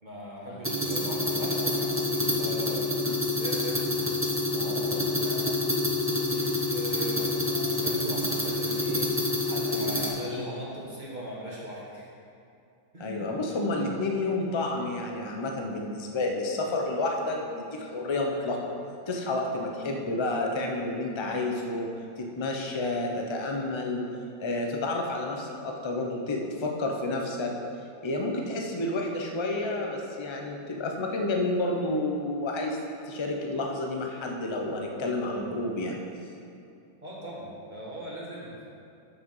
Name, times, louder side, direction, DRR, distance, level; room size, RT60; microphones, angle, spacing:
voice 1, 0.0-2.9 3.4-5.4 6.2-9.1 9.4-12.1 12.9-13.9 37.0-38.5, equal, 25° right, -5 dB, 1.5 m, -40 dB
sound 1, 0.6-10.1, left 2 dB, 10° right, 0.7 m, -27 dB
voice 2, 13.0-18.7 19.1-21.9 22.2-24.0 24.4-27.5 28.0-32.8 33.1-36.0, left 2 dB, 45° left, 1 dB, 0.3 m, -30 dB
7.1 x 6.7 x 5.6 m, 2.6 s
omnidirectional pair, 1.9 m